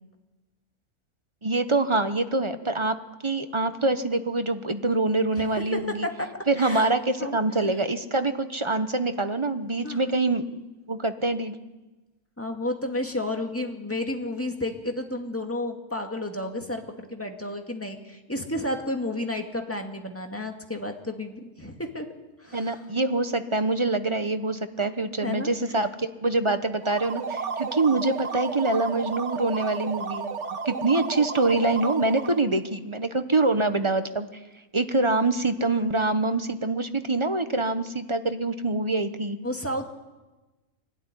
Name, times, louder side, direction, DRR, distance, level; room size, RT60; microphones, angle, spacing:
voice 1, 1.4-3.0 3.2-6.1 6.5-10.4 10.9-11.6 22.5-30.4 30.6-34.3 34.7-39.4, right 2 dB, 25° right, 9 dB, 0.9 m, -25 dB
voice 2, 5.7-6.3 6.6-6.9 7.2-7.4 9.8-10.1 12.4-22.1 22.4-22.8 25.2-25.5 39.4-39.9, left 1 dB, 10° left, 3 dB, 2.1 m, -31 dB
sound 1, 26.8-32.5, right 5 dB, 50° right, 1.6 m, -33 dB
24.0 x 13.0 x 10.0 m, 1.2 s
omnidirectional pair, 1.6 m